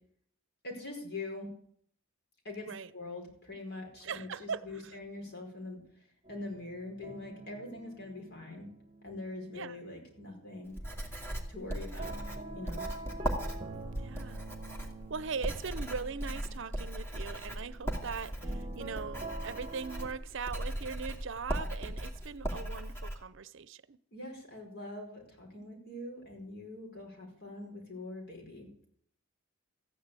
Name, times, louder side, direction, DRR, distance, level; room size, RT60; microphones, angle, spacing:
voice 1, 0.6-1.5 2.4-8.6 9.0-10.7 11.5-12.1 12.5-12.8 24.1-28.9, left 2 dB, 50° left, 4.9 m, -43 dB
voice 2, 4.0-4.9 9.5-9.8 13.9-14.4 15.1-24.0, right 5 dB, 60° right, 0.7 m, -40 dB
sound 1, 6.2-10.3 10.6-20.1, right 3 dB, 25° right, 1.4 m, -47 dB
Writing, 10.7-23.1, right 1 dB, 10° left, 2.5 m, -38 dB
14.5 x 10.5 x 8.3 m
head